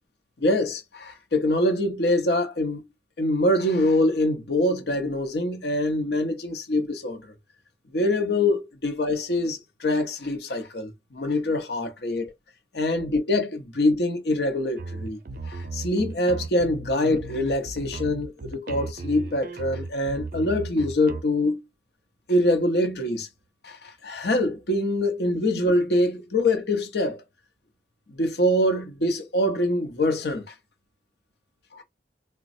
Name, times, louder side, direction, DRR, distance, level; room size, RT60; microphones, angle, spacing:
voice 1, 0.4-2.9 3.2-7.2 7.9-12.3 12.7-21.6 22.3-23.3 23.6-27.2 28.1-30.5 31.7-31.8, left 1 dB, 65° left, 0.8 m, -24 dB
sound 1, 14.8-21.2, right 3 dB, 50° right, 0.5 m, -36 dB
4.0 x 2.2 x 2.6 m
head